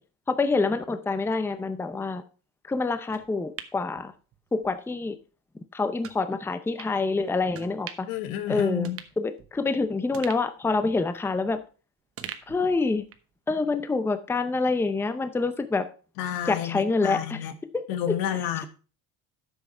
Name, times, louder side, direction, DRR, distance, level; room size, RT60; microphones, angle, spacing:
voice 1, 0.3-2.2 2.7-4.1 4.5-5.2 5.7-8.1 8.5-8.9 9.2-11.6 12.5-13.0 13.5-15.9 16.5-17.5 17.7-18.1, left 3 dB, 5° left, 11 dB, 0.6 m, -26 dB
sound 1, 3.1-4.7 5.1-5.2 6.0-6.2 6.8-6.9 7.5-8.2 8.5-8.6 8.8-9.7 10.1-11.7 12.2-13.3 13.7-13.8, right 9 dB, 40° right, 1.1 m, -44 dB
voice 2, 8.1-9.0 16.2-17.5 17.9-18.7, left 10 dB, 80° left, 9 dB, 1.5 m, -30 dB
10.0 x 7.3 x 4.4 m, 0.38 s
cardioid pair, 135°, 35 cm